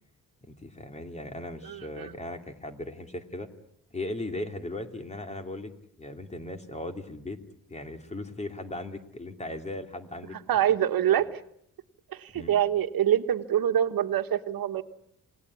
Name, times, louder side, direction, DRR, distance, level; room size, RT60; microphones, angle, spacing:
voice 1, 0.5-3.5 3.9-5.7 6.0-7.4 7.7-10.4 12.3-12.5, left 2 dB, 20° left, 6 dB, 2.8 m, -37 dB
voice 2, 1.6-2.1 10.5-11.4 12.1-14.8, right 10 dB, 90° right, 9 dB, 1.5 m, -25 dB
28.5 x 19.5 x 9.7 m, 0.74 s
wide cardioid pair, 120°, 34 cm